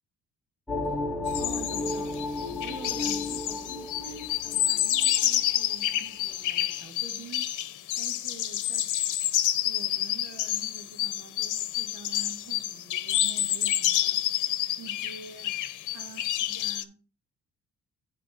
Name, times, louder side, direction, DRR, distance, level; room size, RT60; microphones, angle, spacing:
sound 1, 0.7-6.0, left 2 dB, ahead, 1.8 m, -34 dB
voice 1, 0.9-2.2 2.6-8.9 9.6-14.5 14.8-15.6 15.9-17.0, right 5 dB, 75° right, 3 dB, 2.7 m, -47 dB
sound 2, 1.3-16.8, left 13 dB, 80° left, 0.8 m, -29 dB
10.5 x 4.9 x 3.8 m, 0.35 s
cardioid pair, 90°, 30 cm